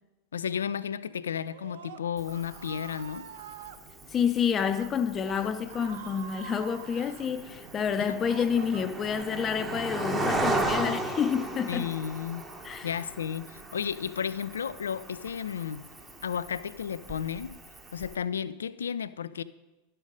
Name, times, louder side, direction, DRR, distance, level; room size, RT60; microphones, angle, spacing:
voice 1, 0.3-3.3 8.0-8.2 11.7-12.4 12.8-15.9 16.2-17.6 17.9-19.4, left 8 dB, 70° left, 0.3 m, -33 dB
Screaming, 1.4-3.8 4.6-4.9 5.2-7.3 7.8-9.2, right 8 dB, 55° right, 0.7 m, -46 dB
Cricket, 2.2-18.2, right 2 dB, 10° right, 0.9 m, -37 dB
voice 2, 4.1-11.9 12.6-12.9, left 7 dB, 25° left, 0.6 m, -29 dB
12.0 x 5.5 x 5.1 m
figure-of-eight pair, 90°, 0 cm